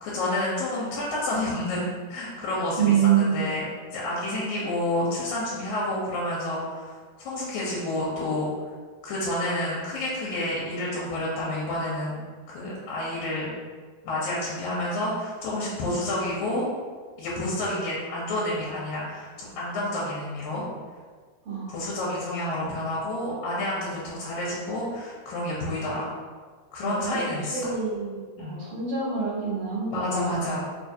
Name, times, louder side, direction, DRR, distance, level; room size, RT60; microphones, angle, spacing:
voice 1, 0.0-8.5 9.0-12.2 12.5-13.5 14.0-16.7 17.2-20.6 21.7-26.1 26.7-27.7 28.4-28.6 29.9-30.6, left 1 dB, 80° left, -6 dB, 2.0 m, -29 dB
voice 2, 2.8-3.4 21.5-21.8 26.8-27.2 27.5-30.5, right 7 dB, 60° right, -9 dB, 1.7 m, -26 dB
4.6 x 2.4 x 2.6 m, 1.5 s
omnidirectional pair, 3.4 m